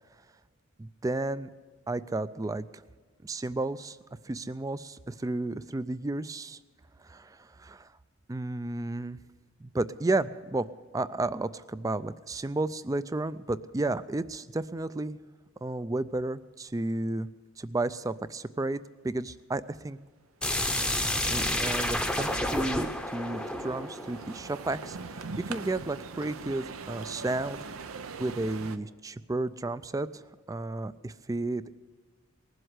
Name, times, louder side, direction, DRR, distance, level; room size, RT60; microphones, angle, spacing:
voice 1, 0.8-1.5 1.9-2.7 3.2-4.0 4.2-6.6 7.0-7.9 8.3-9.2 9.6-10.7 10.9-15.2 15.6-17.3 17.6-18.8 19.0-20.0 21.3-27.6 27.9-30.2 30.5-31.8, right 2 dB, 15° right, 15 dB, 0.3 m, -32 dB
sound 1, 20.4-25.1, left 1 dB, 5° left, 0.7 m, -30 dB
sound 2, 20.9-28.8, right 4 dB, 85° right, 0.7 m, -43 dB
19.5 x 7.8 x 8.0 m, 1.5 s
head